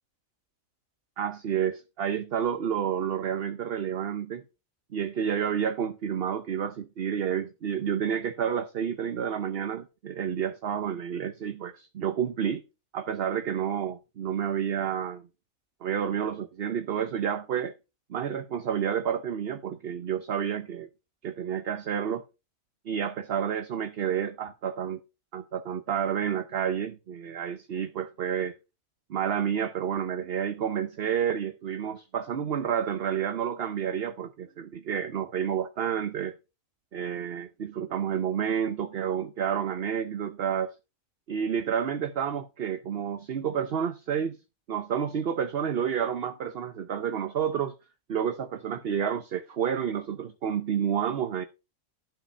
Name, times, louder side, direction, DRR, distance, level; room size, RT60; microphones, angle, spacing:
voice 1, 1.2-4.4 4.9-12.6 12.9-15.3 15.8-17.7 18.1-20.9 21.2-22.2 22.9-25.0 25.3-28.5 29.1-36.4 36.9-40.7 41.3-44.4 44.7-47.7 48.1-51.4, right 8 dB, 50° right, 0.9 m, -30 dB
12.0 x 5.0 x 5.5 m
omnidirectional pair, 1.4 m